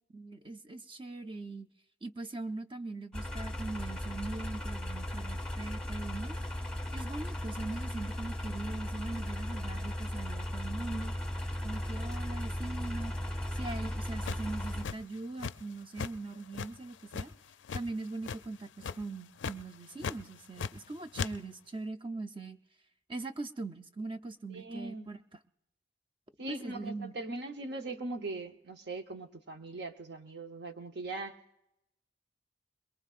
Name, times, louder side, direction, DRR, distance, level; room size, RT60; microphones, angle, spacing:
voice 1, 0.1-1.7 2.0-6.4 6.9-11.1 11.6-13.1 13.5-17.3 17.7-22.6 23.1-25.2 26.5-27.2, right 3 dB, 30° right, 9 dB, 0.6 m, -41 dB
sound 1, 3.1-14.8, left 1 dB, 5° left, 1.1 m, -36 dB
sound 2, 14.2-15.7 16.0-16.1 16.5-17.8 18.2-18.5 18.8-19.1 19.4-19.6 20.0-20.9 21.1-21.3, left 5 dB, 90° left, 0.4 m, -37 dB
voice 2, 24.5-25.1 26.4-31.4, right 2 dB, 65° right, 6 dB, 1.0 m, -40 dB
22.0 x 22.0 x 2.5 m, 0.84 s
head